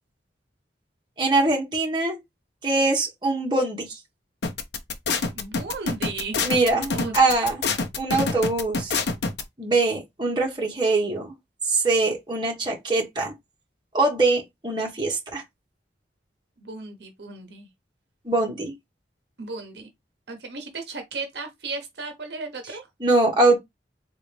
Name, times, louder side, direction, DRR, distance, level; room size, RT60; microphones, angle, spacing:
voice 1, 1.2-2.2 2.6-4.0 6.4-7.6 8.0-9.0 9.6-11.3 11.7-13.3 13.9-15.4 18.2-18.7 23.0-23.6, right 2 dB, 25° right, 1.2 m, -23 dB
sound 1, 4.4-9.4, left 4 dB, 70° left, 0.6 m, -26 dB
voice 2, 5.3-6.4 6.9-7.2 16.6-17.7 19.4-19.9 20.3-22.8, right 3 dB, 65° right, 0.9 m, -35 dB
3.9 x 2.5 x 3.2 m
head